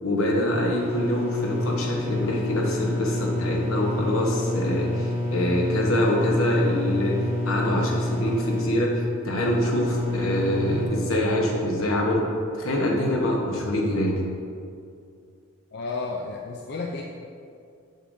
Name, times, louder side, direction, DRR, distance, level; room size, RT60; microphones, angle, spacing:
voice 1, 0.0-7.2 7.5-12.3 12.5-14.1, left 1 dB, 80° left, -1 dB, 1.1 m, -25 dB
sound 1, 0.7-10.9, left 1 dB, 90° right, 1.4 m, -28 dB
voice 2, 15.7-17.0, left 3 dB, 50° left, 0 dB, 0.4 m, -32 dB
6.6 x 6.4 x 2.6 m, 2.4 s
head